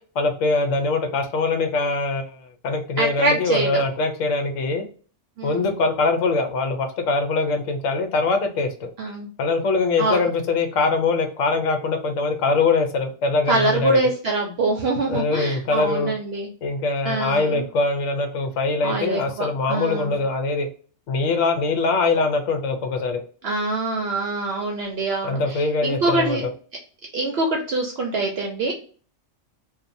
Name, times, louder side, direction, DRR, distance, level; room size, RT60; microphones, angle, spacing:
voice 1, 0.1-4.9 5.4-8.9 9.4-14.0 15.1-16.1 16.6-20.7 21.1-23.2 25.2-26.5, left 3 dB, 80° left, 5 dB, 1.0 m, -23 dB
voice 2, 3.0-3.8 5.4-5.7 9.0-9.3 10.0-10.2 13.5-16.5 17.0-17.6 18.8-20.1 23.4-26.4 27.1-28.7, right 2 dB, 65° right, 1 dB, 0.7 m, -24 dB
2.8 x 2.2 x 2.5 m, 0.42 s
omnidirectional pair, 1.3 m